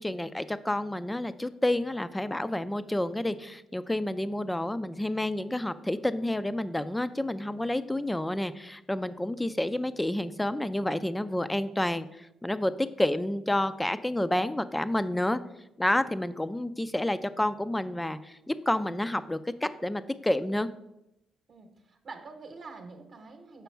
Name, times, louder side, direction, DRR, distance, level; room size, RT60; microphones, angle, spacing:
voice 1, 0.0-15.4 15.8-20.7, left 1 dB, 10° left, 13 dB, 0.4 m, -29 dB
voice 2, 21.5-23.6, right 3 dB, 50° right, 5 dB, 1.0 m, -46 dB
6.9 x 5.1 x 4.5 m, 0.86 s
cardioid pair, 90°, 0 cm